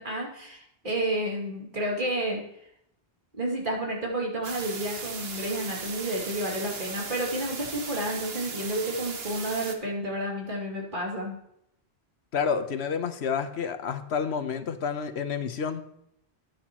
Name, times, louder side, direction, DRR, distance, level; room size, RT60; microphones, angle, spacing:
voice 1, 0.0-2.4 3.3-11.4, right 1 dB, 55° right, -2 dB, 2.8 m, -31 dB
sound 1, 4.4-9.7, right 5 dB, 70° right, 1.3 m, -37 dB
voice 2, 12.3-15.8, left 6 dB, 90° left, 9 dB, 1.1 m, -29 dB
14.0 x 9.2 x 3.0 m, 0.76 s
omnidirectional pair, 1.1 m